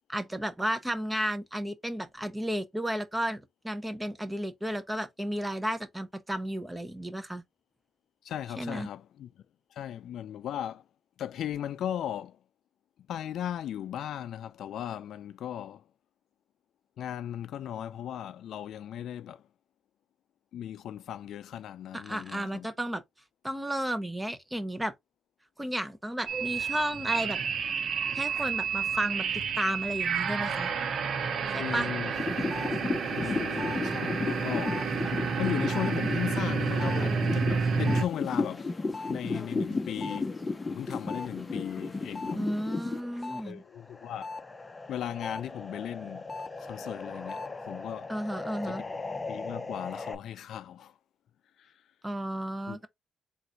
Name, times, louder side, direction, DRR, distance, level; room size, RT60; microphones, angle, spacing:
voice 1, 0.1-7.4 8.6-8.9 21.9-23.0 23.4-24.9 25.6-27.4 28.2-30.7 31.5-31.9 42.3-43.6 48.1-48.8 52.0-52.9, equal, 10° right, 0.8 m, -33 dB
voice 2, 8.2-9.3 9.7-10.8 11.2-12.4 13.1-15.8 17.0-19.4 20.5-22.7 31.6-32.1 32.7-35.1 35.4-40.3 40.7-42.4 43.4-44.3 44.9-48.1 48.7-48.8 49.3-50.9 51.6-51.7 52.7-52.8, left 10 dB, 70° left, 0.4 m, -37 dB
sound 1, 26.3-38.0, right 5 dB, 60° right, 0.9 m, -30 dB
sound 2, 32.1-43.4 43.8-50.1, left 3 dB, 20° left, 0.7 m, -35 dB
3.8 x 2.5 x 4.4 m
cardioid pair, 90°, 0 cm